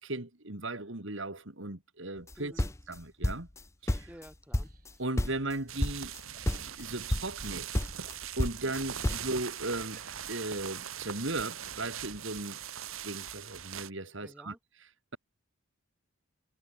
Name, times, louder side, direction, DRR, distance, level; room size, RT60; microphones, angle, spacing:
voice 1, 0.0-2.5 2.9-3.5 3.8-4.1 5.0-6.1 6.6-7.7 8.4-10.0 10.3-12.6 13.0-14.5, right 2 dB, 60° right, 2.7 m, -37 dB
sound 1, 2.3-3.6 3.9-4.9 5.2-5.5 5.8-6.2 6.5-6.8 7.1-7.5 7.7-9.3, left 1 dB, 15° left, 0.6 m, -31 dB
voice 2, 2.4-2.7 4.1-4.7 14.2-14.6, equal, 5° right, 6.7 m, -51 dB
sound 2, 4.3-7.5 7.8-8.9 9.7-10.6, right 3 dB, 40° right, 5.2 m, -60 dB
sound 3, 5.7-13.9, right 9 dB, 75° right, 2.1 m, -41 dB
head